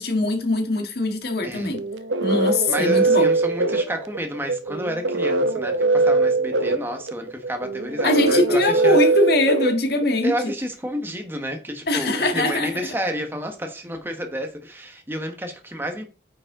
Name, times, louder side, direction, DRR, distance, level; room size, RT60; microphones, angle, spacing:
voice 1, 0.0-1.8 2.2-3.3 8.0-10.5 11.9-12.8, left 2 dB, 55° left, 1.7 m, -22 dB
sound 1, 1.7-10.4, right 3 dB, 80° right, 0.8 m, -22 dB
voice 2, 2.7-9.0 10.2-16.0, equal, 10° right, 1.3 m, -30 dB
9.4 x 5.3 x 3.8 m
head